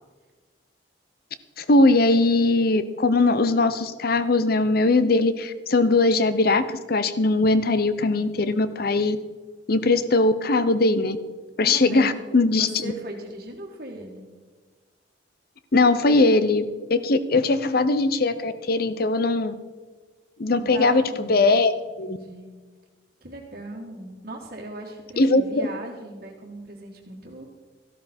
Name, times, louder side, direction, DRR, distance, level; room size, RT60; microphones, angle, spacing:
voice 1, 1.6-9.2 9.7-11.2 11.6-12.9 15.7-19.5 20.4-21.7 22.0-22.2 25.2-25.7, left 2 dB, 55° left, 13 dB, 0.7 m, -20 dB
voice 2, 11.6-12.2 12.5-14.3 20.5-21.4 22.0-22.5 23.2-27.5, right 1 dB, 50° right, -6 dB, 1.6 m, -38 dB
13.5 x 12.5 x 4.3 m, 1.4 s
head